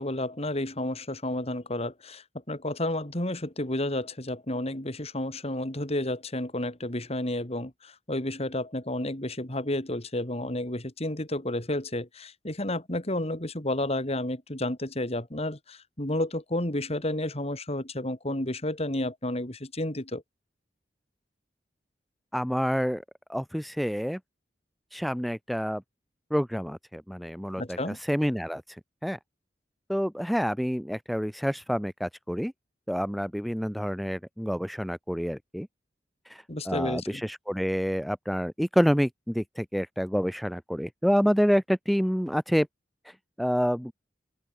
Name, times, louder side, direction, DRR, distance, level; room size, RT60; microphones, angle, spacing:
voice 1, 0.0-20.2 27.6-28.0 36.5-37.2, left 1 dB, 35° left, 3.3 m, -31 dB
voice 2, 22.3-23.0 23.3-24.2 24.9-25.8 26.3-29.2 29.9-32.5 32.9-35.7 36.3-42.7 43.0-43.9, equal, ahead, 0.5 m, -28 dB
open air
head